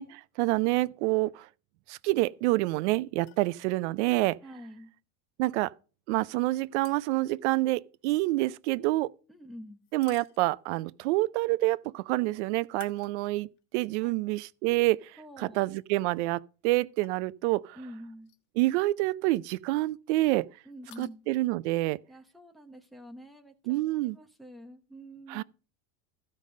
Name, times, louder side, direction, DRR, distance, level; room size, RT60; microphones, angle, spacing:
voice 1, 0.0-1.5 1.9-4.4 5.4-5.7 6.1-9.1 9.9-13.5 13.7-17.8 18.6-20.5 21.0-22.0 23.7-24.2 25.3-25.4, right 19 dB, 70° right, 0.5 m, -27 dB
sound 1, 3.2-3.5 6.4-7.3 9.8-10.8 12.7-13.6 14.1-14.2 15.7-15.9 17.0-17.2 18.2-18.5 18.8-18.9 20.7-21.1, left 14 dB, 80° left, 1.6 m, -55 dB
voice 2, 4.4-4.9 9.3-9.8 14.0-14.1 15.2-15.6 17.8-18.3 20.7-21.2 22.1-25.4, equal, ahead, 1.0 m, -47 dB
14.5 x 5.3 x 5.1 m
cardioid pair, 160°, 35 cm